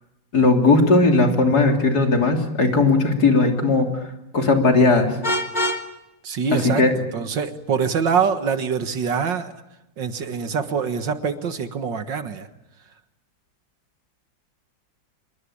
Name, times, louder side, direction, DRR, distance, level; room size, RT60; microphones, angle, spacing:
voice 1, 0.3-4.0 4.3-5.1 6.5-6.9, left 3 dB, 55° left, 3 dB, 3.7 m, -17 dB
Vehicle horn car horn honking, 5.2-5.9, left 1 dB, 20° left, 2.3 m, -23 dB
voice 2, 6.2-6.8 7.1-9.5 10.0-12.5, right 6 dB, 70° right, 9 dB, 2.2 m, -24 dB
26.5 x 23.0 x 8.7 m, 0.88 s
omnidirectional pair, 2.1 m